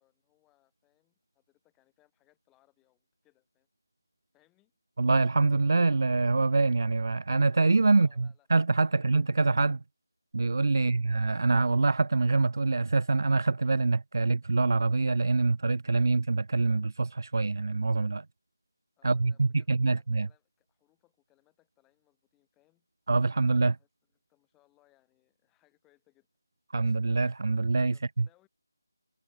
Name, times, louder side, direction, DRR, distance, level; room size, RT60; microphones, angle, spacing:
voice 1, 0.0-3.7 4.3-4.7 7.9-8.5 8.9-9.1 19.0-22.9 23.7-23.9 24.3-26.3 26.7-26.8 27.9-28.5, left 18 dB, 5° left, 2.5 m, -70 dB
voice 2, 5.0-9.8 10.3-18.3 19.0-20.3 23.1-23.8 26.7-28.3, right 3 dB, 60° right, 0.4 m, -25 dB
figure-of-eight pair, 175°, 2 cm